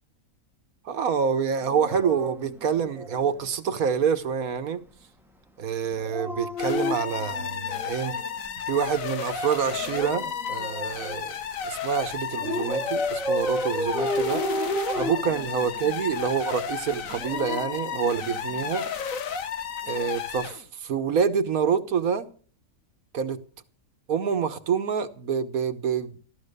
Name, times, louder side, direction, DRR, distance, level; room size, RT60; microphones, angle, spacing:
voice 1, 0.9-4.8 5.6-8.1 8.7-11.4 11.6-14.4 15.0-18.9 19.9-22.3 23.1-23.4 24.1-26.2, right 7 dB, 70° right, 10 dB, 1.7 m, -27 dB
Dog, 1.6-3.5 5.9-8.3 9.6-11.3 12.4-16.0 16.9-18.6 19.8-20.1, left 1 dB, ahead, 1.1 m, -32 dB
sound 1, 6.6-20.6, left 7 dB, 65° left, 1.4 m, -33 dB
15.0 x 13.0 x 6.7 m, 0.43 s
omnidirectional pair, 1.5 m